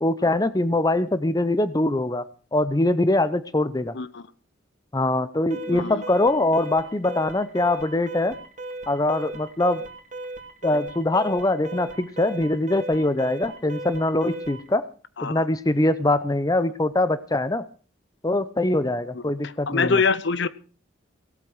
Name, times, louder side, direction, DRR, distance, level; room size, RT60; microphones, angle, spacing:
voice 1, 0.0-2.3 2.5-3.9 4.9-8.4 8.9-9.8 10.6-14.9 15.2-17.6 18.2-20.0, left 2 dB, 20° left, 14 dB, 0.6 m, -23 dB
voice 2, 3.9-4.3 5.7-6.0 15.2-15.4 19.1-20.5, left 4 dB, 60° left, 16 dB, 0.9 m, -25 dB
Alarm, 5.5-14.7, right 2 dB, 40° right, 2.8 m, -37 dB
18.0 x 8.5 x 6.1 m, 0.39 s
head